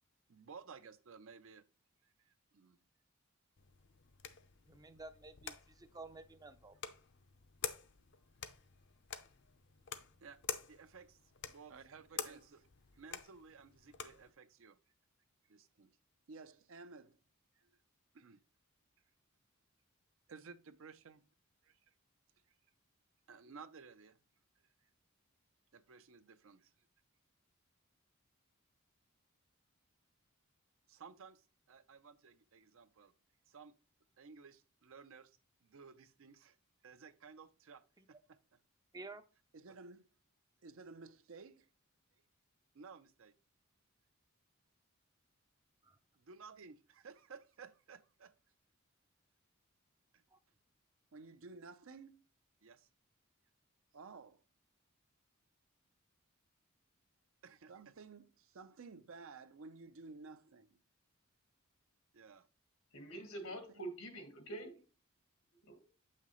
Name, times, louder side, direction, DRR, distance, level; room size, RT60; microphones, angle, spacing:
voice 1, 0.3-1.6 2.0-2.8 10.2-11.2 11.4-12.7 12.9-14.8 15.5-15.9 16.3-17.2 17.6-17.7 18.1-18.4 20.3-21.2 21.6-21.8 23.3-24.2 25.7-26.7 30.9-33.1 33.5-33.7 34.2-36.6 36.8-38.4 39.5-40.0 40.6-41.7 42.7-43.3 46.2-48.3 50.1-50.2 51.1-52.2 52.6-52.9 53.9-54.4 57.4-60.8 62.1-62.5, right 4 dB, 65° right, 0.5 m, -55 dB
sound 1, 3.6-14.3, left 8 dB, 55° left, 0.6 m, -48 dB
voice 2, 4.7-6.8 38.9-39.2 45.8-46.0 50.3-50.4, right 3 dB, 15° right, 0.4 m, -52 dB
voice 3, 62.9-64.8 65.6-65.9, right 1 dB, 85° left, 1.7 m, -46 dB
7.3 x 5.8 x 3.1 m
head